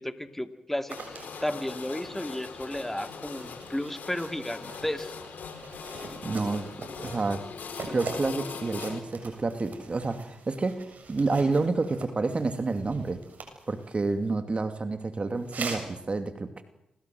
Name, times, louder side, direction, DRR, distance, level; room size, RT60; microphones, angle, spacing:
voice 1, 0.0-5.1, left 1 dB, 10° left, 8 dB, 2.5 m, -33 dB
sound 1, 0.9-9.0, left 5 dB, 70° left, 4.1 m, -41 dB
sound 2, 0.9-14.3 15.3-15.9, right 4 dB, 65° right, 7.3 m, -44 dB
voice 2, 6.2-6.7 7.0-7.4 7.9-13.2 13.7-16.6, right 3 dB, 40° right, 8 dB, 2.6 m, -29 dB
27.5 x 20.0 x 7.8 m, 0.85 s
supercardioid pair, 55°, 3 cm